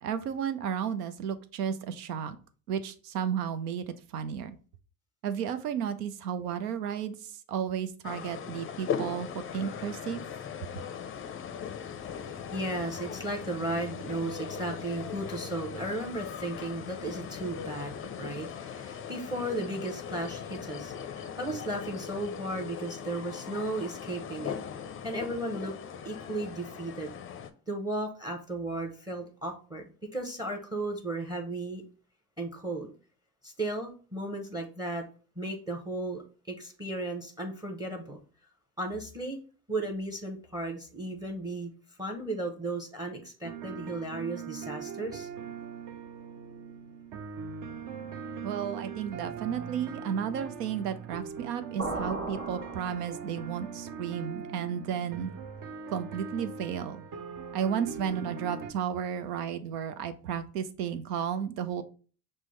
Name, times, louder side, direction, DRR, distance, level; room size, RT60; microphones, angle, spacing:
voice 1, 0.0-2.4 2.7-4.6 5.2-10.2 48.4-55.3 55.9-57.0 57.5-61.8, right 8 dB, 85° right, 11 dB, 0.6 m, -33 dB
sound 1, 8.0-27.5, left 8 dB, 30° left, 0.5 m, -39 dB
voice 2, 12.0-24.6 25.0-25.7 26.0-27.1 27.7-29.8 30.1-31.8 32.4-32.9 33.4-35.0 35.4-36.2 36.5-38.2 38.8-39.4 39.7-41.7 42.0-45.3, right 2 dB, 10° right, 5 dB, 0.8 m, -35 dB
sound 2, 43.4-58.7, right 6 dB, 45° right, 0.6 m, -41 dB
sound 3, 51.8-53.5, right 2 dB, 25° right, 1.5 m, -37 dB
6.0 x 2.1 x 3.1 m, 0.38 s
hypercardioid pair, 70°, 46 cm